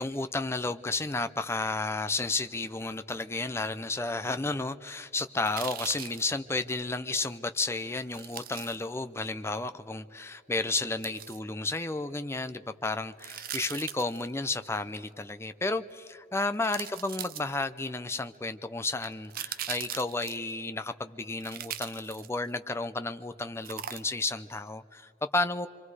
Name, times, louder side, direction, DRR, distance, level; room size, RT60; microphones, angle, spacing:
voice 1, 0.0-25.7, left 2 dB, 15° left, 10 dB, 0.5 m, -32 dB
sound 1, 5.4-6.3 8.1-8.8 11.0-11.4 13.2-14.3 15.9-16.0 16.6-17.8 19.0-20.5 21.4-22.5 23.6-24.3 24.7-24.8, right 10 dB, 45° right, 0.6 m, -40 dB
27.0 x 24.0 x 4.8 m, 2.5 s
head